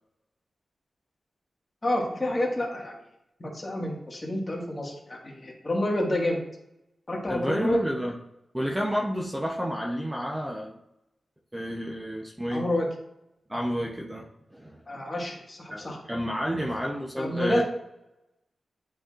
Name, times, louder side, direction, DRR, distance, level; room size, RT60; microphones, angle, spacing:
voice 1, 1.8-2.9 3.4-6.4 7.1-7.8 12.5-12.9 14.9-16.0 17.2-17.6, left 1 dB, 25° left, -2 dB, 1.7 m, -28 dB
voice 2, 7.3-8.2 8.5-10.8 11.5-12.7 13.5-14.8 15.7-17.6, equal, 10° right, -2 dB, 0.7 m, -30 dB
10.5 x 4.2 x 2.5 m, 0.86 s
wide cardioid pair, 130°, 0 cm